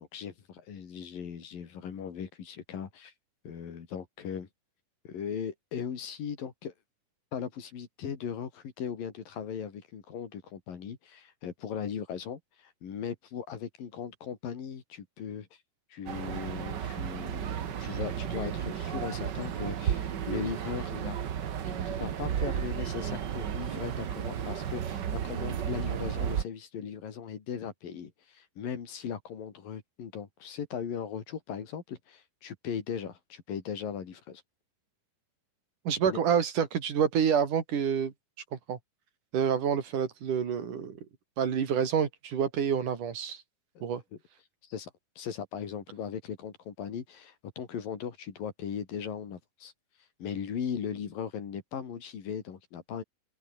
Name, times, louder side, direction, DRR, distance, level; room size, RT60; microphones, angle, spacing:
voice 1, 0.0-3.1 3.4-4.5 5.0-6.7 7.3-15.5 15.9-21.2 21.7-34.4 36.1-36.2 44.6-49.7 50.2-53.0, left 7 dB, 85° left, 4.8 m, -38 dB
sound 1, 16.1-26.4, right 9 dB, 85° right, 0.9 m, -33 dB
voice 2, 35.9-38.1 38.5-38.8 39.3-41.0 41.4-43.4 43.8-44.0, right 7 dB, 65° right, 4.1 m, -28 dB
open air
omnidirectional pair, 3.9 m